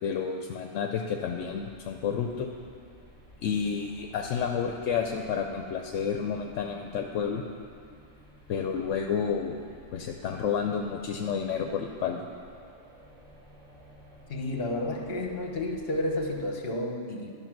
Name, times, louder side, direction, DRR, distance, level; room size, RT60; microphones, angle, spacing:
voice 1, 0.0-2.5 3.4-7.4 8.5-9.6 9.9-12.2, left 6 dB, 80° left, 4 dB, 0.9 m, -30 dB
sound 1, 1.1-16.4, equal, 75° right, 2.9 m, -54 dB
voice 2, 14.3-17.3, left 1 dB, 55° left, 2 dB, 1.2 m, -31 dB
11.5 x 5.6 x 6.0 m, 2.3 s
omnidirectional pair, 1.3 m